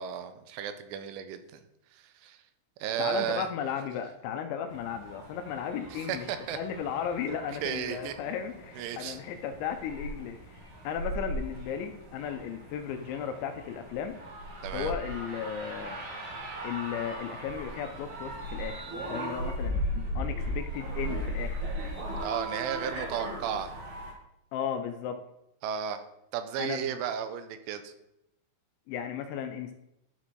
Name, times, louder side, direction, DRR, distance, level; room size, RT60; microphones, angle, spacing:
voice 1, 0.0-1.6 1.9-2.4 2.8-3.5 5.9-6.6 7.3-7.4 7.6-8.1 8.8-9.2 14.6-14.9 22.2-23.7 25.6-26.0 26.3-27.9, right 9 dB, 85° right, 9 dB, 3.1 m, -34 dB
voice 2, 3.0-6.3 6.5-14.2 14.7-16.0 16.6-21.6 24.5-25.2 26.6-26.8 28.9-29.7, left 8 dB, 80° left, 7 dB, 2.7 m, -35 dB
sound 1, 4.7-24.1, right 1 dB, 60° right, 1.6 m, -38 dB
11.5 x 4.3 x 4.5 m, 0.84 s
omnidirectional pair, 5.6 m